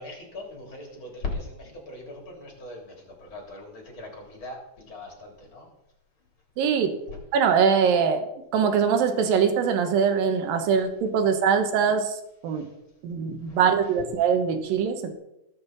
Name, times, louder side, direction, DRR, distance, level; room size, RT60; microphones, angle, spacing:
voice 1, 0.0-5.7 7.1-7.2 13.5-13.6, left 3 dB, 35° left, 0 dB, 4.0 m, -39 dB
voice 2, 6.6-7.0 7.3-8.3 8.5-12.2 12.4-12.7 13.0-15.1, right 6 dB, 90° right, 7 dB, 3.0 m, -22 dB
20.5 x 7.8 x 4.1 m, 0.87 s
omnidirectional pair, 3.9 m